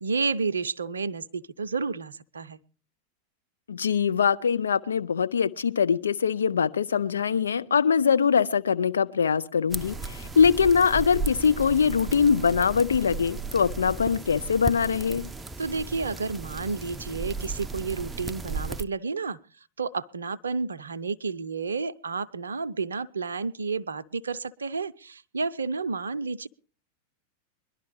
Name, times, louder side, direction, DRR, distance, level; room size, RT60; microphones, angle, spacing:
voice 1, 0.0-2.6 15.6-19.4 19.8-26.5, right 4 dB, 70° right, 0.5 m, -31 dB
voice 2, 3.7-15.3, left 6 dB, 70° left, 0.7 m, -23 dB
sound 1, 9.7-18.8, right 3 dB, 10° right, 0.5 m, -35 dB
22.0 x 11.5 x 3.1 m
figure-of-eight pair, 90°, 0 cm